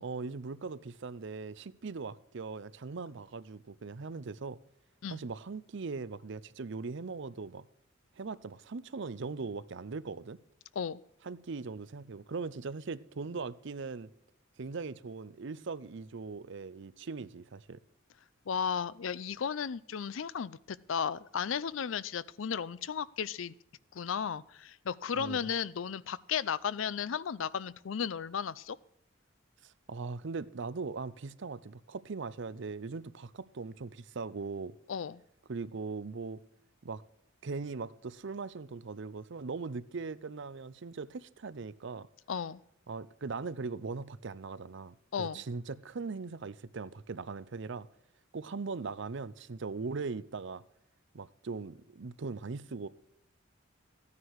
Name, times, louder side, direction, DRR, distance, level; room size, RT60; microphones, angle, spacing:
voice 1, 0.0-4.6 5.1-7.7 8.2-10.4 11.2-14.1 14.6-17.8 25.1-25.5 29.6-34.7 35.5-36.4 36.8-37.0 37.4-42.1 42.9-47.9 48.3-50.6 51.1-52.9, right 4 dB, 65° right, 0.6 m, -40 dB
voice 2, 18.5-23.5 23.9-28.8 34.9-35.2 42.3-42.6 45.1-45.4, left 7 dB, 75° left, 0.5 m, -34 dB
14.5 x 9.7 x 4.7 m
head